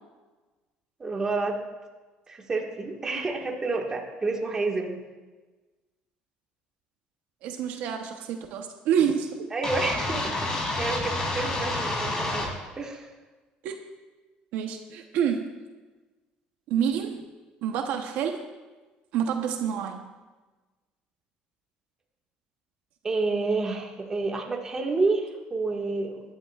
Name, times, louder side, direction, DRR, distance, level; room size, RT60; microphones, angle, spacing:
voice 1, 1.0-1.6 2.3-5.0 9.5-12.5 12.8-13.1 23.0-26.2, right 3 dB, 20° right, 1 dB, 1.7 m, -29 dB
voice 2, 7.4-9.5 13.6-13.7 14.5-15.5 16.7-17.2 17.6-18.4 19.1-20.0, right 8 dB, 70° right, 4 dB, 1.0 m, -28 dB
sound 1, 9.6-12.5, left 2 dB, 25° left, 2.9 m, -29 dB
21.0 x 11.5 x 2.4 m, 1.3 s
cardioid pair, 130°, 3 cm